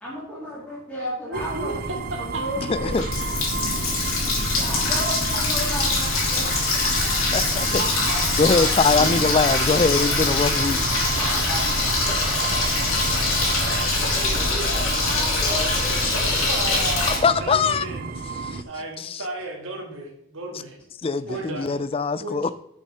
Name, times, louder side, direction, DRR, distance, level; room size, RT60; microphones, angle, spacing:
voice 1, 0.0-1.8 2.2-2.9 4.5-7.1 11.1-12.2 13.9-16.0, equal, 5° left, -9 dB, 2.2 m, -33 dB
sound 1, 1.3-18.6, right 4 dB, 40° right, 0.4 m, -31 dB
voice 2, 1.3-2.4 7.5-9.9 16.5-18.0 18.7-20.8 21.3-21.8 22.2-22.5, right 2 dB, 65° right, 2 dB, 1.9 m, -34 dB
voice 3, 2.6-3.0 7.3-7.8 8.4-10.8 17.2-17.9 19.0-19.2 21.0-22.5, left 4 dB, 25° left, 15 dB, 0.3 m, -22 dB
Water tap faucet, 2.7-17.2, left 3 dB, 70° left, 2.8 m, -23 dB
sound 2, 9.0-11.5, right 2 dB, 90° right, 2.1 m, -39 dB
6.6 x 6.5 x 5.7 m, 0.75 s
head